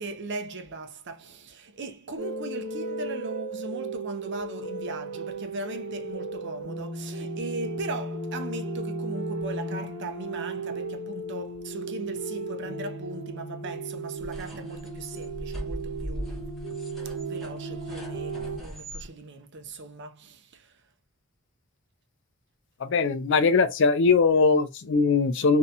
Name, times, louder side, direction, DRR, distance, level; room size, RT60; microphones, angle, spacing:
voice 1, 0.0-16.6 17.0-20.8, right 2 dB, 55° right, 0.6 m, -39 dB
sound 1, 2.2-18.6, right 2 dB, 80° right, 1.0 m, -35 dB
sound 2, 14.2-19.1, equal, ahead, 0.9 m, -40 dB
voice 2, 22.8-25.6, left 4 dB, 55° left, 0.4 m, -21 dB
2.8 x 2.6 x 2.2 m
head